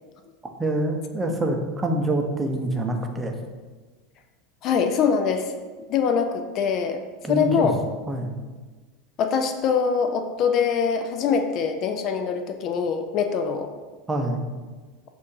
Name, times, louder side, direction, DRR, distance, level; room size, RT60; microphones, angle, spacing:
voice 1, 0.6-3.3 7.2-7.7 8.1-8.4 14.1-14.5, right 1 dB, 15° right, 3 dB, 0.6 m, -26 dB
voice 2, 4.6-5.5 5.9-7.0 7.3-7.7 9.2-13.7, left 6 dB, 45° left, 6 dB, 0.4 m, -23 dB
6.2 x 2.6 x 2.8 m, 1.4 s
hypercardioid pair, 85°, 0 cm